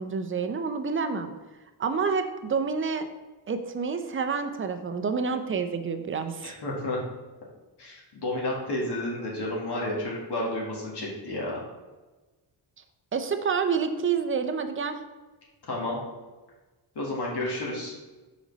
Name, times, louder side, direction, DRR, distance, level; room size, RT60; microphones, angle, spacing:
voice 1, 0.0-1.3 1.8-3.1 3.5-6.5 13.1-14.9, right 5 dB, 30° right, 8 dB, 0.5 m, -28 dB
voice 2, 6.4-7.0 7.8-11.6 15.7-16.0 17.0-18.0, left 1 dB, 60° left, -4 dB, 1.9 m, -31 dB
6.2 x 5.3 x 4.0 m, 1.2 s
wide cardioid pair, 155°, 44 cm